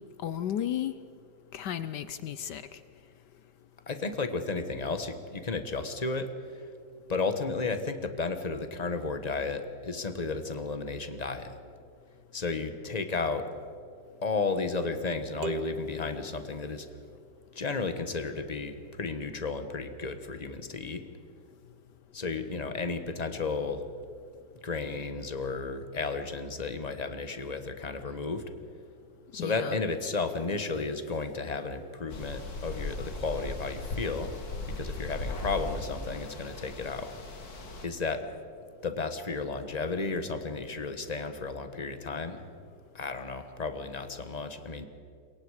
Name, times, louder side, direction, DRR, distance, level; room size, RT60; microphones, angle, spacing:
voice 1, 0.2-0.9 1.5-2.8 29.4-29.7, left 10 dB, 65° left, 13 dB, 1.1 m, -34 dB
voice 2, 3.9-6.7 7.1-11.7 12.3-13.5 14.2-16.9 17.5-21.0 22.1-23.9 24.6-28.4 29.3-34.3 34.7-37.1 37.8-38.3 38.8-42.4 42.9-44.9, left 4 dB, 25° left, 8 dB, 1.0 m, -33 dB
sound 1, 15.4-17.3, right 3 dB, 65° right, 1.1 m, -40 dB
sound 2, 32.1-37.9, left 2 dB, 45° left, 2.4 m, -38 dB
27.0 x 23.0 x 4.9 m, 2.5 s
omnidirectional pair, 2.3 m